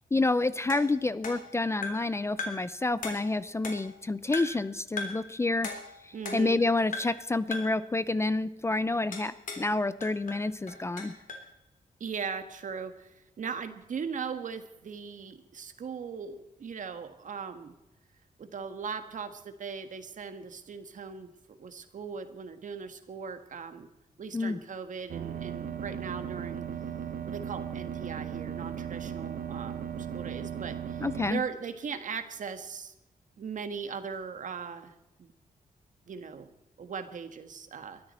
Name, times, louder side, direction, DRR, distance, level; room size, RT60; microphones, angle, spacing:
voice 1, 0.1-5.7 6.3-11.1 24.3-24.6 31.0-31.4, left 2 dB, 20° left, 15 dB, 0.5 m, -28 dB
sound 1, 0.7-2.1 2.4-2.7 3.0-4.0 4.3-4.7 5.0-5.3 5.6-6.6 6.9-7.2 7.5-7.8 9.1-9.7 10.0-11.5, left 3 dB, 65° left, 3.4 m, -39 dB
voice 2, 6.1-6.6 12.0-17.7 18.4-23.9 24.2-26.7 27.3-32.9 33.4-34.9 35.2-35.3 36.1-36.5 36.8-38.0, right 6 dB, 60° right, 9 dB, 1.6 m, -39 dB
sound 2, 25.1-31.3, right 8 dB, 80° right, 1.1 m, -37 dB
22.5 x 13.0 x 4.3 m, 0.91 s
wide cardioid pair, 140°, 15 cm